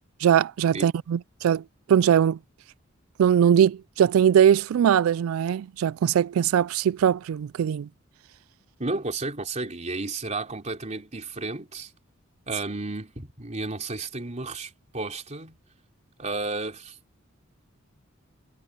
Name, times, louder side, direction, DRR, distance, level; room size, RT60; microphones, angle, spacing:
voice 1, 0.2-1.6 1.9-2.4 3.2-7.9, right 9 dB, 85° right, 0.3 m, -21 dB
voice 2, 8.8-11.9 12.5-15.6 16.2-17.0, right 3 dB, 35° right, 3.6 m, -32 dB
head